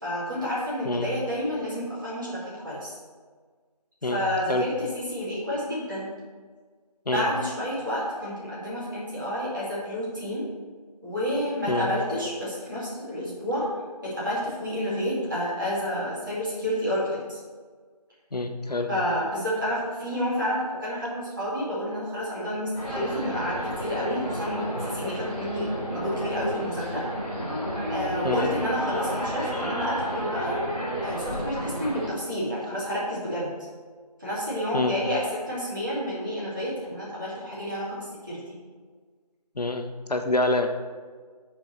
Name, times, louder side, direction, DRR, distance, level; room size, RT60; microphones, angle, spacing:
voice 1, 0.0-3.0 4.1-6.1 7.1-10.5 11.0-13.7 14.0-17.4 18.9-27.1 27.9-30.6 31.0-33.5 34.2-38.4, equal, 30° right, -8 dB, 2.3 m, -29 dB
voice 2, 18.3-18.9 28.2-28.5 34.7-34.9 39.6-40.7, left 2 dB, 75° left, 6 dB, 0.8 m, -26 dB
sound 1, 22.7-32.1, equal, 10° right, 1.3 m, -31 dB
6.1 x 4.6 x 6.6 m, 1.5 s
figure-of-eight pair, 180°, 20 cm